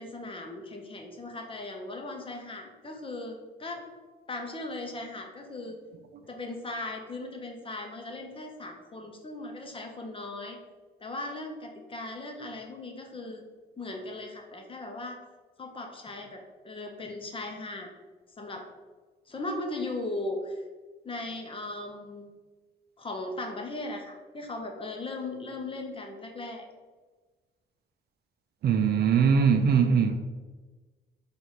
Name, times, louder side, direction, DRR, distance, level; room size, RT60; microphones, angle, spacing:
voice 1, 0.0-3.8 4.3-5.8 6.3-10.6 11.0-13.4 13.8-15.2 15.6-17.9 18.4-18.6 19.3-20.6 21.0-22.3 23.0-26.7, left 2 dB, 25° left, 0.8 m, -38 dB
voice 2, 28.6-30.2, right 6 dB, 55° right, 0.4 m, -21 dB
4.1 x 2.5 x 4.6 m
cardioid pair, 90°, 20 cm